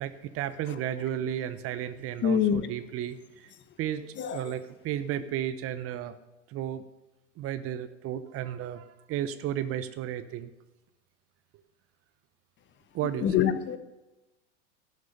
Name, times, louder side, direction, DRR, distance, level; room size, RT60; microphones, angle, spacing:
voice 1, 0.0-3.5 3.8-4.0 4.3-6.2 6.5-6.8 7.4-10.5 12.9-13.4, right 11 dB, 40° right, 13 dB, 0.9 m, -33 dB
voice 2, 2.2-2.7 4.2-4.4 13.2-13.8, left 8 dB, 30° left, 12 dB, 1.0 m, -25 dB
12.0 x 6.4 x 8.5 m, 1.0 s
hypercardioid pair, 105°, 37 cm